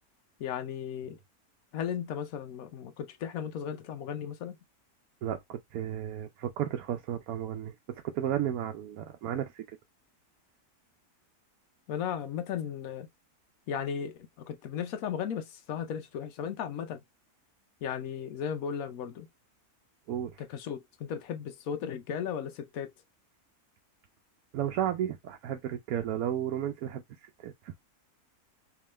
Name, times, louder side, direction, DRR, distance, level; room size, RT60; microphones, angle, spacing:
voice 1, 0.4-1.2 1.7-4.6 11.9-13.1 13.7-17.0 17.8-19.3 20.4-22.9, left 8 dB, 70° left, 1.1 m, -35 dB
voice 2, 5.2-7.7 8.0-9.6 20.1-20.4 24.5-27.7, right 10 dB, 75° right, 1.1 m, -33 dB
3.6 x 3.0 x 3.0 m
omnidirectional pair, 1.6 m